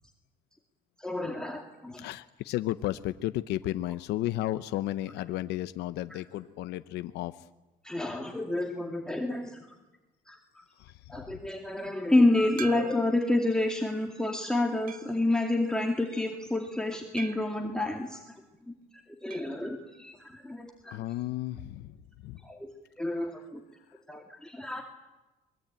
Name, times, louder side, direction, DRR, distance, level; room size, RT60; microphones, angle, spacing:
voice 1, 1.0-2.1 6.1-6.2 7.8-9.6 10.3-10.6 11.1-18.4 18.7-18.8 19.2-21.0 22.4-22.7 23.0-23.6 24.1-24.8, left 2 dB, 5° left, 1 dB, 2.4 m, -29 dB
voice 2, 2.0-7.3 10.8-11.2 20.9-22.0 22.2-22.4, left 15 dB, 85° left, 12 dB, 0.8 m, -33 dB
sound 1, 12.6-13.3 13.9-14.0 14.9-15.3 17.2-17.7 19.3-19.6 19.9-20.0 20.2-20.3 22.3-22.4, right 7 dB, 55° right, 1.3 m, -43 dB
24.5 x 22.0 x 9.0 m, 1.1 s
cardioid pair, 110°, 17 cm